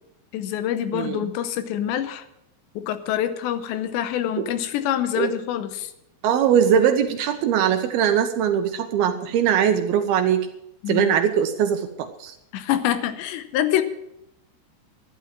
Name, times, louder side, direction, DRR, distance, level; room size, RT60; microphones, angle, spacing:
voice 1, 0.3-2.2 2.8-5.9 10.8-11.1 12.5-13.8, left 11 dB, 85° left, 10 dB, 3.1 m, -26 dB
voice 2, 0.9-1.3 4.4-4.5 5.2-5.3 6.2-10.5 10.9-12.4, right 8 dB, 75° right, 7 dB, 2.5 m, -21 dB
12.0 x 10.5 x 7.4 m, 0.81 s
omnidirectional pair, 5.1 m